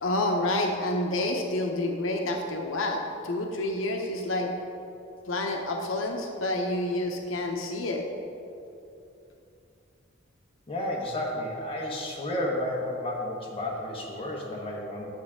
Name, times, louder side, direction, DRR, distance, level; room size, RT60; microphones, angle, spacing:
voice 1, 0.0-4.5 5.2-8.0, left 1 dB, 85° left, 2 dB, 0.8 m, -28 dB
voice 2, 10.7-15.1, left 1 dB, 30° left, -3 dB, 1.3 m, -32 dB
10.5 x 7.1 x 3.7 m, 2.7 s
head